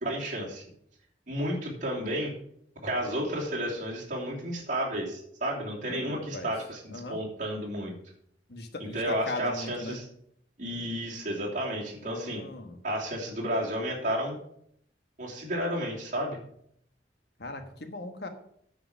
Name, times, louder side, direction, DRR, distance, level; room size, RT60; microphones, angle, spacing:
voice 1, 0.0-0.6 1.3-2.4 2.8-7.9 8.8-10.1 10.6-12.4 12.8-14.4 15.2-16.4, equal, 45° right, -3 dB, 3.0 m, -32 dB
voice 2, 5.8-6.5 6.9-7.2 8.5-10.0 12.0-12.8 17.4-18.3, left 2 dB, 65° left, 6 dB, 1.3 m, -39 dB
9.6 x 5.0 x 7.1 m, 0.69 s
head